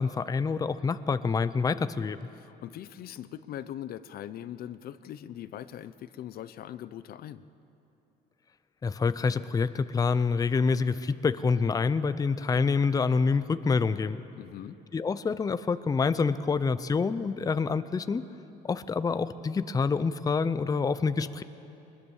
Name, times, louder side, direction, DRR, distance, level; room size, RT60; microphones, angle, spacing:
voice 1, 0.0-2.2 8.8-14.2 14.9-18.3 18.6-21.4, left 5 dB, 20° left, 13 dB, 0.6 m, -27 dB
voice 2, 2.3-7.4 14.4-14.8, left 11 dB, 65° left, 14 dB, 0.7 m, -41 dB
22.0 x 20.5 x 7.2 m, 2.8 s
cardioid pair, 110°, 17 cm